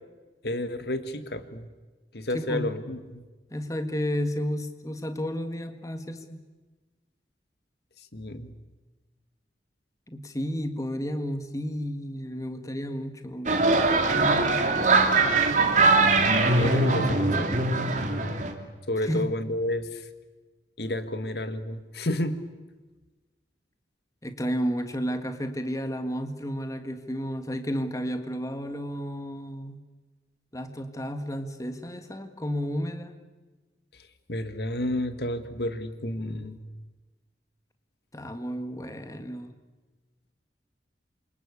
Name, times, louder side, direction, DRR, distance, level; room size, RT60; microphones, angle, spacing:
voice 1, 0.4-1.7 2.1-3.2 8.1-8.5 15.2-15.7 16.5-18.5 18.9-19.9 20.8-22.4 34.3-36.6, left 1 dB, 60° left, 10 dB, 1.8 m, -31 dB
voice 2, 2.3-2.7 3.5-6.4 10.1-13.6 19.0-19.3 24.2-29.8 30.5-33.2 38.1-39.5, equal, 20° left, 7 dB, 1.7 m, -32 dB
sound 1, 13.5-18.5, right 3 dB, 45° right, 2.8 m, -22 dB
28.0 x 24.5 x 8.5 m, 1.3 s
head